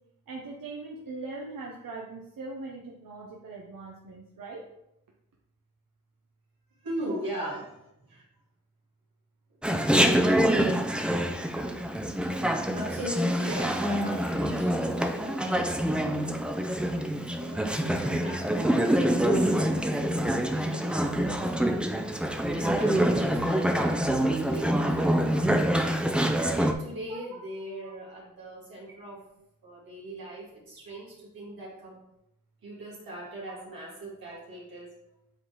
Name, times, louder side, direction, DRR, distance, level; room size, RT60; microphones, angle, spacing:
voice 1, 0.3-4.6 7.0-7.5 13.5-13.9 27.1-27.4 27.8-27.9, right 3 dB, 70° right, -1 dB, 0.9 m, -41 dB
voice 2, 6.8-7.6 8.1-8.2 11.0-12.2 12.7-16.4 17.4-20.0 20.5-29.2 29.6-32.0 32.6-34.9, equal, 90° right, -5 dB, 2.1 m, -40 dB
Chatter, 9.6-26.7, right 1 dB, 5° right, 0.5 m, -26 dB
7.8 x 3.9 x 3.0 m, 0.85 s
cardioid pair, 50°, 34 cm